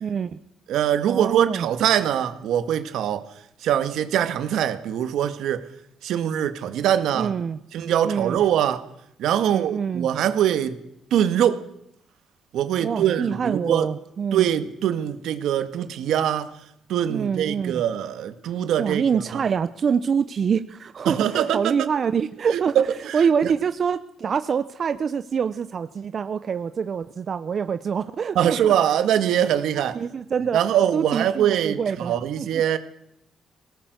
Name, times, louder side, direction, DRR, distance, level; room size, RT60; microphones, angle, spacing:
voice 1, 0.0-0.4 1.1-1.7 7.2-7.6 8.0-8.4 9.4-10.1 12.8-14.5 17.1-17.8 18.8-22.8 23.1-28.8 29.9-30.6 30.9-32.6, right 6 dB, 50° right, 0.8 m, -25 dB
voice 2, 0.7-3.3 3.6-5.7 6.0-7.3 7.7-8.8 9.2-10.8 11.1-11.6 12.5-13.9 14.3-16.5 16.9-19.0 19.3-19.4 21.1-21.9 22.5-23.2 28.4-30.0 30.5-32.8, right 10 dB, 80° right, 1.9 m, -23 dB
21.0 x 18.5 x 8.2 m
cardioid pair, 90°, 0 cm